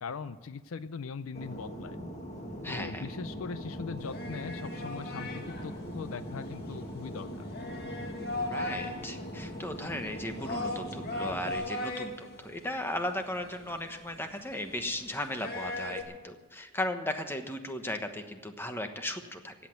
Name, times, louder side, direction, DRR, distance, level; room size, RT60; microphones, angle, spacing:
voice 1, 0.0-2.0 2.7-7.5, left 5 dB, 65° left, 14 dB, 0.5 m, -40 dB
Fixed-wing aircraft airplane, 1.3-11.5, equal, 30° left, 2.0 m, -41 dB
voice 2, 2.6-3.1 8.4-19.5, left 1 dB, 10° left, 6 dB, 1.1 m, -36 dB
sound 1, 4.0-16.0, left 2 dB, 45° left, 1.9 m, -39 dB
16.5 x 8.4 x 9.4 m, 1.3 s
head